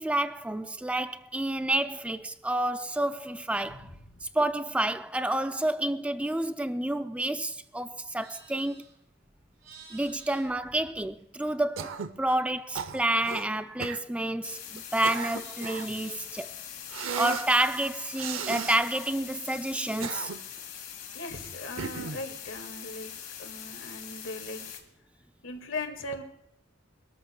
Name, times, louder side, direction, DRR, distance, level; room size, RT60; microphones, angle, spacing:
voice 1, 0.0-3.9 4.2-8.8 9.9-16.5 17.1-20.3, right 1 dB, 5° right, 0.4 m, -29 dB
Livestock farm animals working animals, 7.9-11.6 11.9-14.5 14.8-16.4, right 4 dB, 50° right, 4.2 m, -55 dB
Cough, 11.8-12.2 12.7-13.4 13.8-14.0 14.8-15.9 16.9-17.5 18.1-18.8 19.8-20.6 21.8-22.3, right 6 dB, 85° right, 0.7 m, -35 dB
sound 1, 14.4-24.8, left 9 dB, 45° left, 1.9 m, -43 dB
voice 2, 21.1-23.1 23.4-24.6 25.4-26.2, left 2 dB, 75° left, 1.8 m, -38 dB
23.5 x 13.0 x 2.2 m
head